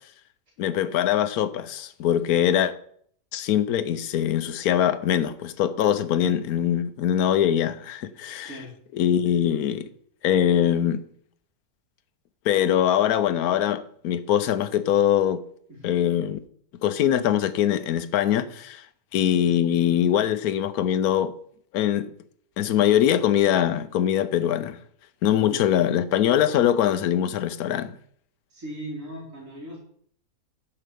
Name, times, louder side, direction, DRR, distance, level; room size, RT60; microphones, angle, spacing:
voice 1, 0.6-2.7 3.3-8.6 8.9-9.9 10.2-11.0 12.5-15.4 15.8-16.4 16.8-18.8 19.1-21.3 21.7-22.1 22.6-24.8 25.2-27.9, left 10 dB, 85° left, 1.2 m, -22 dB
voice 2, 28.5-29.8, right 1 dB, 65° right, 3.1 m, -38 dB
9.9 x 4.9 x 6.9 m
omnidirectional pair, 1.5 m